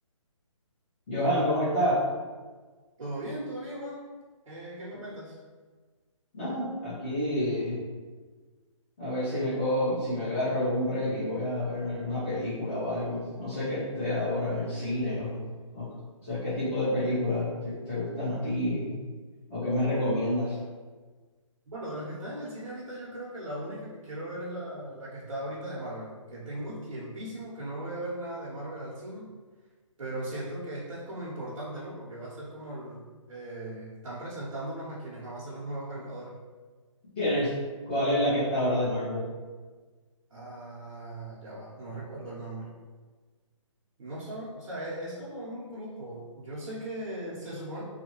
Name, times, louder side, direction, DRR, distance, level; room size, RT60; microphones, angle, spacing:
voice 1, 1.1-2.0 6.3-7.8 9.0-15.4 15.7-15.9 16.2-19.0 19.5-20.6 37.2-37.5 37.9-39.2, left 1 dB, 20° left, -12 dB, 1.0 m, -28 dB
voice 2, 3.0-4.0 4.5-5.4 21.7-29.3 30.0-36.4 40.3-42.7 44.0-47.8, right 1 dB, 70° right, -8 dB, 0.9 m, -38 dB
2.7 x 2.3 x 2.9 m, 1.4 s
hypercardioid pair, 165°, 17 cm